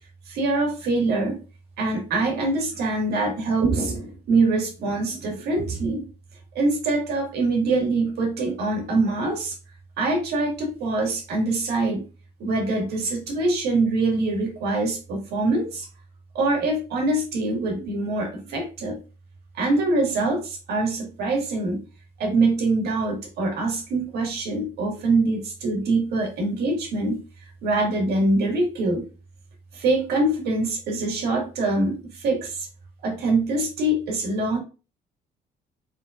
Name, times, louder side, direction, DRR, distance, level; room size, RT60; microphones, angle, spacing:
voice 1, 0.3-1.4 1.8-6.1 6.6-9.6 10.0-12.1 12.4-15.9 16.3-19.0 19.5-21.8 22.2-27.2 27.6-29.0 29.7-32.7 33.0-34.6, right 2 dB, 75° right, 2 dB, 1.8 m, -24 dB
5.4 x 3.6 x 2.5 m, 0.33 s
cardioid pair, 110°, 17 cm